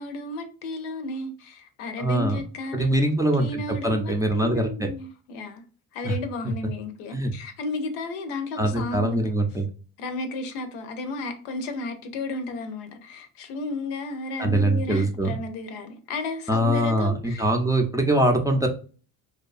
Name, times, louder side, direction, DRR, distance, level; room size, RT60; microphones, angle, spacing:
voice 1, 0.0-3.1 3.4-5.6 5.9-9.3 10.0-17.5, left 2 dB, 90° left, 0.6 m, -33 dB
voice 2, 2.0-2.4 2.7-4.9 6.0-6.2 6.4-6.5 7.1-7.3 8.6-9.7 14.4-15.3 16.5-18.7, right 1 dB, 10° right, 0.4 m, -23 dB
2.7 x 2.3 x 2.4 m
supercardioid pair, 75°, 42 cm